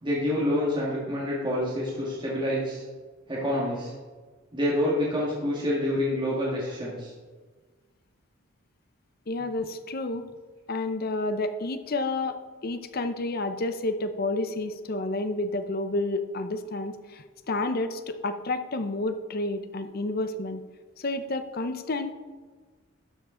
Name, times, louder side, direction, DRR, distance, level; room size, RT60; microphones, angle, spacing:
voice 1, 0.0-2.8 3.3-3.9 4.5-7.1, left 1 dB, 25° right, -6 dB, 1.8 m, -27 dB
voice 2, 9.3-10.2 10.7-12.4 12.6-20.6 21.0-22.1, left 2 dB, 50° left, 9 dB, 0.6 m, -30 dB
13.0 x 7.2 x 3.8 m, 1.4 s
head